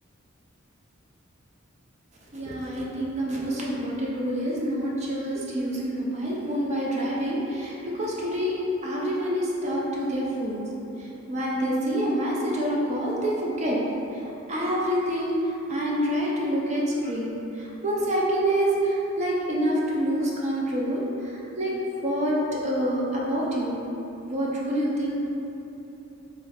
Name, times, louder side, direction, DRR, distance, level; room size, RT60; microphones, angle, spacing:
voice 1, 2.3-10.6 11.0-13.8 14.5-21.7 22.0-23.8 24.2-25.2, equal, 30° right, -4 dB, 0.4 m, -27 dB
3.1 x 2.3 x 3.3 m, 3.0 s
head